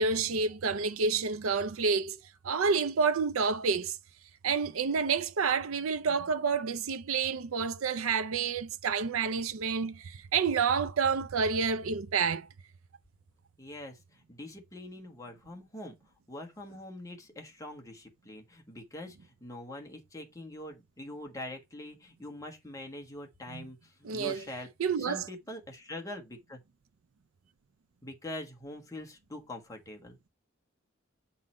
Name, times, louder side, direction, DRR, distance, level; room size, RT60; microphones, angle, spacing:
voice 1, 0.0-2.2 2.4-4.0 4.4-12.5 23.5-23.6 24.0-24.4 24.8-25.3, right 5 dB, 85° right, 0.5 m, -29 dB
voice 2, 13.6-15.9 16.3-24.7 25.0-26.6 28.0-30.2, left 1 dB, 15° left, 1.4 m, -44 dB
7.6 x 3.8 x 4.2 m
head